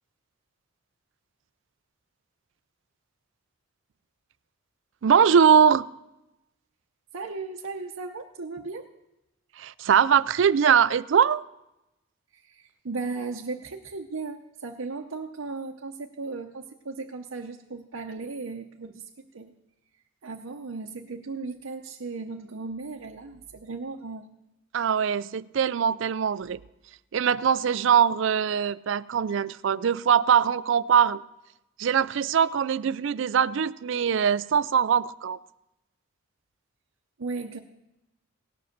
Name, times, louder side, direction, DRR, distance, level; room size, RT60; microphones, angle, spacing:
voice 1, 5.0-5.9 9.6-11.4 24.7-26.6 27.1-31.2 31.8-35.4, right 7 dB, 65° right, 17 dB, 0.4 m, -22 dB
voice 2, 7.1-8.9 12.3-19.0 19.3-19.5 20.2-24.3 37.2-37.6, right 3 dB, 90° right, 1 dB, 0.8 m, -36 dB
17.5 x 7.7 x 6.6 m, 0.92 s
head